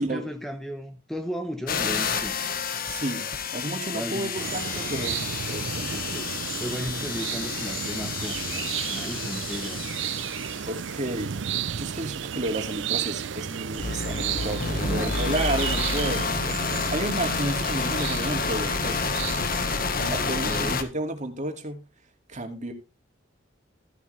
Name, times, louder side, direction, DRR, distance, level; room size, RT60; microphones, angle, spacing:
voice 1, 0.0-2.5 3.9-4.3 5.9-9.9 14.8-15.2 20.2-20.9, equal, ahead, 1.1 m, -35 dB
sound 1, 1.7-10.7 13.7-20.8, left 4 dB, 50° left, 1.4 m, -29 dB
voice 2, 2.9-6.2 10.7-11.3 11.7-19.0 20.0-21.8 22.3-22.7, right 1 dB, 40° right, 2.4 m, -32 dB
sound 2, 4.3-20.7, right 8 dB, 70° right, 0.6 m, -33 dB
14.0 x 10.5 x 3.4 m
head